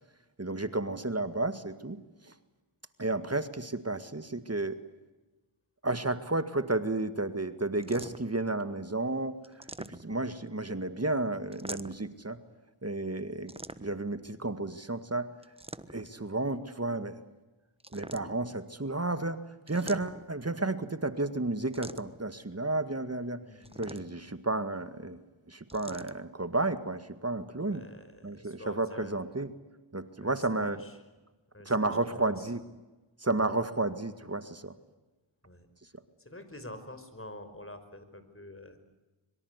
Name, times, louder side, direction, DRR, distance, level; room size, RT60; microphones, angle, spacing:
voice 1, 0.4-2.0 2.2-2.3 3.0-4.8 5.8-12.4 12.8-15.3 15.9-17.2 17.9-23.4 23.8-25.2 25.5-27.8 28.2-29.5 29.9-30.8 31.7-32.6 33.2-34.7, right 2 dB, 30° right, 12 dB, 1.9 m, -32 dB
sound 1, 7.8-8.4 9.4-10.3 11.5-12.1 13.5-14.1 15.4-16.2 17.8-18.6 19.7-20.4 21.7-22.3 23.6-24.3 25.7-26.2, right 1 dB, 10° right, 1.3 m, -45 dB
voice 2, 23.4-24.3 27.5-29.2 30.2-31.0 31.5-32.5 33.4-33.5 35.4-38.8, left 1 dB, 25° left, 10 dB, 5.2 m, -48 dB
25.5 x 23.5 x 8.2 m, 1.1 s
cardioid pair, 40°, 49 cm